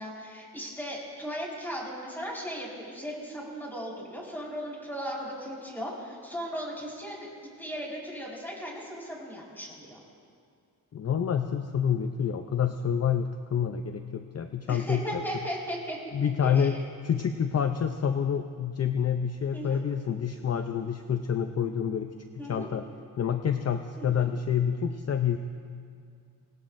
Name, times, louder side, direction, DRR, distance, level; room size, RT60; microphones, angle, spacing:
voice 1, 0.0-10.0 14.7-16.1 16.4-16.8 19.5-19.8 22.4-22.7 24.0-24.2, equal, 5° left, -4 dB, 4.8 m, -37 dB
voice 2, 10.9-15.2 16.1-16.8 17.0-22.1 22.5-22.8 23.2-25.4, left 8 dB, 40° left, 7 dB, 0.6 m, -28 dB
26.0 x 18.5 x 2.6 m, 2.2 s
wide cardioid pair, 115°, 38 cm